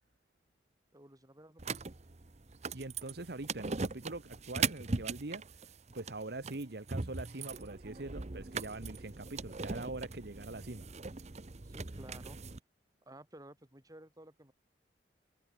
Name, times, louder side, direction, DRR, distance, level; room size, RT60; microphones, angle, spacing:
voice 1, 0.9-1.7 11.6-12.4 13.1-14.5, right 1 dB, 20° right, 5.8 m, -54 dB
sound 1, 1.6-12.6, right 4 dB, 40° right, 0.9 m, -40 dB
voice 2, 2.7-5.4 5.9-10.8, right 2 dB, 65° right, 1.3 m, -43 dB
head